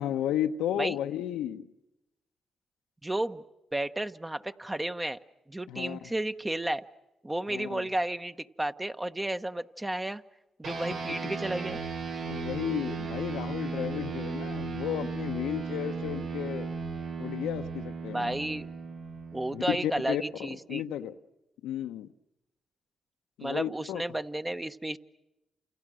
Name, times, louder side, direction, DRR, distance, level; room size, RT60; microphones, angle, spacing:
voice 1, 0.0-1.7 5.7-6.0 7.5-7.9 12.3-16.7 17.2-18.3 19.5-20.2 20.7-21.1 21.6-22.1 23.4-24.0, left 11 dB, 90° left, 7 dB, 1.1 m, -33 dB
voice 2, 3.0-3.4 3.7-5.2 5.5-6.8 7.2-10.2 10.6-11.8 18.1-18.7 19.3-20.8 23.4-25.0, right 1 dB, 15° right, 9 dB, 1.2 m, -32 dB
sound 1, 10.6-20.4, right 5 dB, 80° right, 3.8 m, -36 dB
29.5 x 29.0 x 6.4 m, 0.95 s
supercardioid pair, 65°, 0 cm